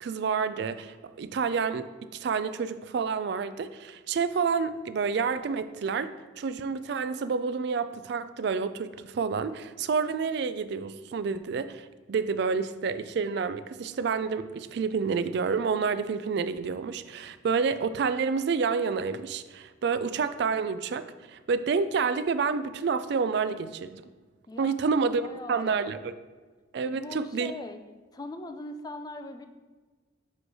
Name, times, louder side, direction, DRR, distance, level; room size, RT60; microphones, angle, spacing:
voice 1, 0.0-6.1 6.4-24.0 24.6-25.2 25.5-26.1 26.7-27.5, right 5 dB, 55° right, 13 dB, 0.3 m, -29 dB
voice 2, 24.5-25.9 26.9-27.8 28.1-29.5, left 2 dB, 20° left, 8 dB, 0.3 m, -41 dB
7.5 x 3.2 x 4.7 m, 1.4 s
head